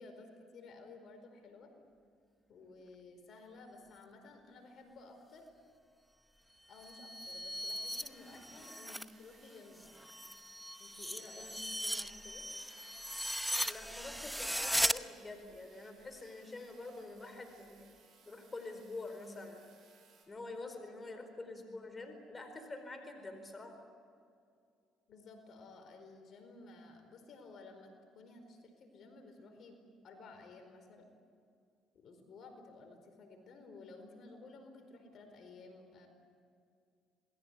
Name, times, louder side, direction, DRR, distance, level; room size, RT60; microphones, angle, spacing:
voice 1, 0.0-1.7 2.5-5.4 6.7-10.2 10.8-12.4 25.1-27.9 28.1-29.8 30.0-31.1 31.9-36.1, left 3 dB, 60° left, 6 dB, 4.6 m, -54 dB
sound 1, 6.7-9.1 9.5-15.0, equal, ahead, 0.9 m, -38 dB
sound 2, 8.0-20.3, right 6 dB, 55° right, 7.9 m, -65 dB
voice 2, 13.6-17.9 18.3-19.7 20.3-23.8, left 2 dB, 25° left, 6 dB, 4.4 m, -47 dB
27.5 x 20.5 x 8.4 m, 2.3 s
supercardioid pair, 85°, 0 cm